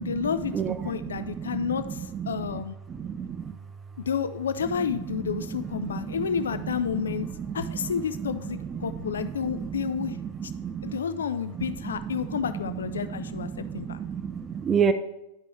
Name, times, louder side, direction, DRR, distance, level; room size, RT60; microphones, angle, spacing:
voice 1, 0.0-2.7 4.0-7.3 7.5-10.2 10.4-10.5 10.8-14.0, left 7 dB, 65° left, 11 dB, 0.3 m, -30 dB
voice 2, 1.0-1.5 2.2-2.3 3.0-3.5 6.0-6.2 7.5-7.6 9.5-9.7 10.5-11.0 13.1-14.9, right 7 dB, 20° right, 10 dB, 0.4 m, -29 dB
11.0 x 5.2 x 3.2 m, 0.91 s
figure-of-eight pair, 90°, 0 cm